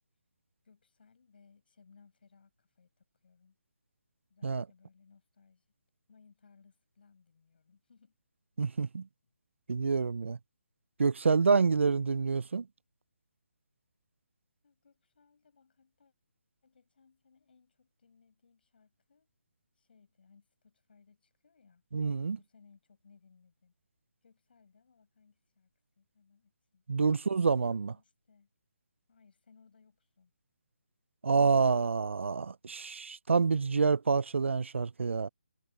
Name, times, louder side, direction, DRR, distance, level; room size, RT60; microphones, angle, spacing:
voice 1, 0.6-3.6 4.3-5.6 6.1-8.2 11.4-12.2 14.6-16.1 16.6-19.3 19.7-21.8 22.3-23.7 24.2-25.7 26.0-27.3 27.7-28.5 29.1-30.3, left 5 dB, 55° left, 6.6 m, -64 dB
voice 2, 8.6-9.1 9.7-10.4 11.0-12.7 21.9-22.4 26.9-28.0 31.2-35.3, right 5 dB, 90° right, 0.4 m, -27 dB
hypercardioid pair, 170°, 6 cm